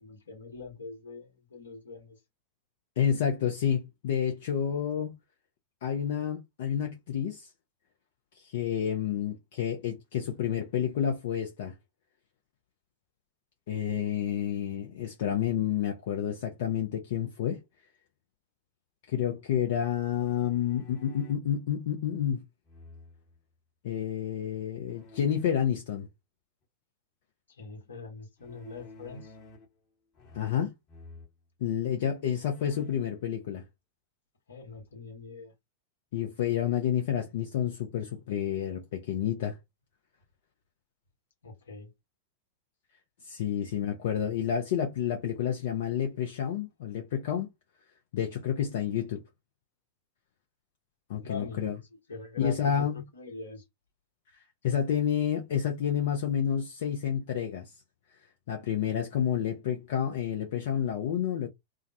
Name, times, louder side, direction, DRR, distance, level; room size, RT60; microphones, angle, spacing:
voice 1, 0.0-2.2 27.5-29.3 34.5-35.5 41.4-41.9 51.2-53.6, left 4 dB, 70° left, 1.0 m, -43 dB
voice 2, 3.0-5.2 5.8-7.5 8.3-11.7 13.7-17.6 19.1-22.4 23.8-26.1 30.3-30.7 31.6-33.6 36.1-39.6 43.2-47.5 48.1-49.2 51.1-51.8 52.4-53.1 54.6-57.7 58.5-61.5, left 9 dB, 55° left, 0.5 m, -29 dB
sound 1, 20.1-21.5 22.6-23.4 24.9-25.5 28.4-29.8 30.1-30.6 30.9-31.3 31.9-32.0 32.3-33.1, left 3 dB, 35° left, 1.0 m, -51 dB
2.3 x 2.0 x 2.6 m
figure-of-eight pair, 90°, 0 cm